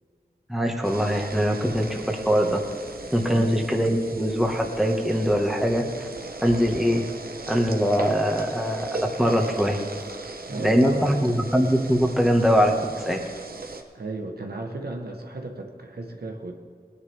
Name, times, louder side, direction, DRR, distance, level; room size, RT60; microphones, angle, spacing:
voice 1, 0.5-2.6 3.1-6.1 6.4-7.0 7.5-9.8 10.5-12.7 13.1-13.2, equal, ahead, 1 dB, 1.7 m, -22 dB
sound 1, 0.8-13.8, right 3 dB, 70° right, 1.1 m, -38 dB
voice 2, 3.2-3.5 10.2-11.4 13.9-16.5, right 2 dB, 90° right, 2 dB, 1.3 m, -35 dB
19.0 x 10.5 x 3.6 m, 2.1 s
wide cardioid pair, 50°, 16 cm